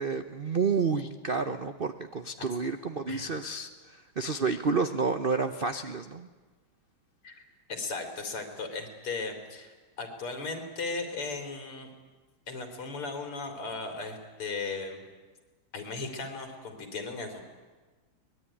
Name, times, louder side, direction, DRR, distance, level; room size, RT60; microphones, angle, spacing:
voice 1, 0.0-6.3, right 4 dB, 75° right, 9 dB, 0.5 m, -30 dB
voice 2, 7.2-11.9 12.5-15.0 15.7-17.4, left 3 dB, 85° left, 5 dB, 4.0 m, -37 dB
23.5 x 20.5 x 10.0 m, 1.3 s
omnidirectional pair, 2.4 m